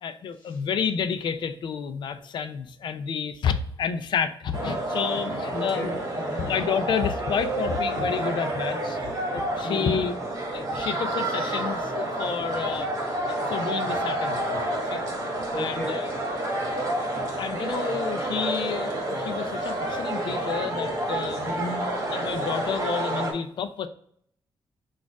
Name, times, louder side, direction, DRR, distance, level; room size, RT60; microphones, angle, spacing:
voice 1, 0.0-5.9 6.3-9.0 9.3-10.1 10.5-12.9 13.3-15.0 15.6-16.1 17.4-21.5 22.1-23.9, left 7 dB, 65° left, 10 dB, 0.5 m, -30 dB
sound 1, 4.5-23.3, right 1 dB, 40° right, 1.2 m, -29 dB
voice 2, 5.5-6.5 9.6-10.1 15.5-16.0 17.0-17.4 21.4-21.9, left 1 dB, 20° left, -4 dB, 1.8 m, -34 dB
6.2 x 2.4 x 3.5 m, 0.66 s
wide cardioid pair, 150°, 9 cm